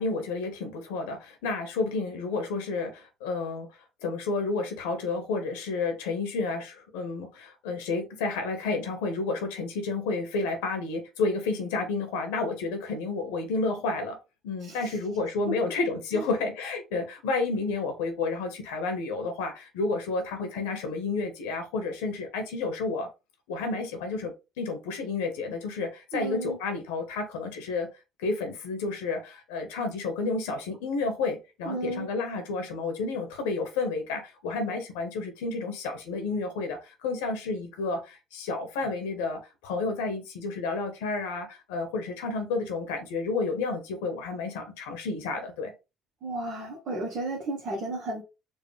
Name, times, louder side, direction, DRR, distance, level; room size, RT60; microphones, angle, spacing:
voice 1, 0.0-3.7 4.0-14.2 14.4-23.1 23.5-27.9 28.2-45.7, left 3 dB, 80° left, 1.0 m, -31 dB
voice 2, 14.6-15.0 16.1-16.3 26.1-26.6 31.6-32.1 46.2-48.2, right 2 dB, 60° right, 1.0 m, -33 dB
4.5 x 2.4 x 3.3 m
hypercardioid pair, 55°, 0 cm